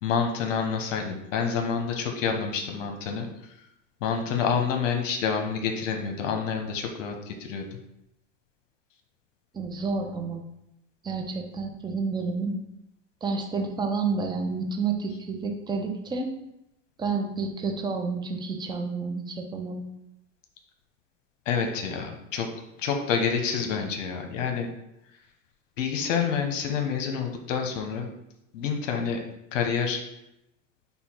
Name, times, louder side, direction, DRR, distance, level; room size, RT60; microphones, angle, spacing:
voice 1, 0.0-3.3 4.0-7.7 21.5-22.5 22.8-24.7 25.8-28.1 28.5-29.2 29.5-30.0, left 6 dB, 85° left, 4 dB, 0.9 m, -28 dB
voice 2, 9.5-10.4 11.0-12.5 13.2-16.3 17.0-19.8, right 4 dB, 10° right, 3 dB, 0.5 m, -30 dB
5.3 x 2.3 x 4.4 m, 0.84 s
supercardioid pair, 125°, 37 cm